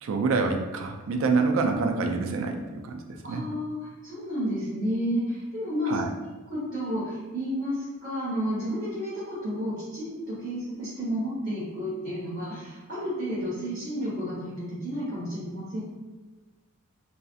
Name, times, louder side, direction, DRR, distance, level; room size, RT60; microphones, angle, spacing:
voice 1, 0.0-3.0 3.3-3.4 5.9-6.1, right 4 dB, 65° right, 4 dB, 0.3 m, -26 dB
voice 2, 3.2-6.0 6.5-15.8, equal, 40° right, -12 dB, 1.2 m, -31 dB
2.6 x 2.3 x 2.4 m, 1.2 s
head